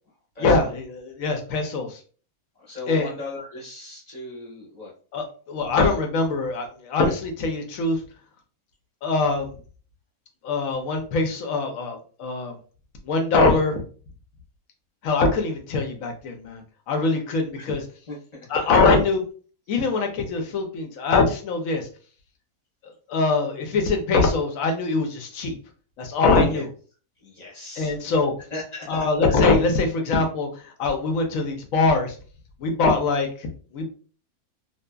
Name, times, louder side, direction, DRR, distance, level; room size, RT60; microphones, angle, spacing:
voice 1, 0.4-2.0 2.9-3.1 5.1-8.0 9.0-9.6 10.4-12.6 13.1-13.8 15.0-17.8 18.5-19.2 19.7-21.9 22.8-25.6 26.0-26.7 27.8-28.3 28.9-32.2 32.6-33.9, left 3 dB, 65° left, 4 dB, 0.9 m, -23 dB
voice 2, 2.6-4.9 17.5-17.7 18.1-18.5 26.5-26.6 27.2-28.0 28.5-29.0, left 2 dB, 30° left, -5 dB, 0.9 m, -37 dB
2.7 x 2.4 x 2.2 m, 0.40 s
omnidirectional pair, 1.6 m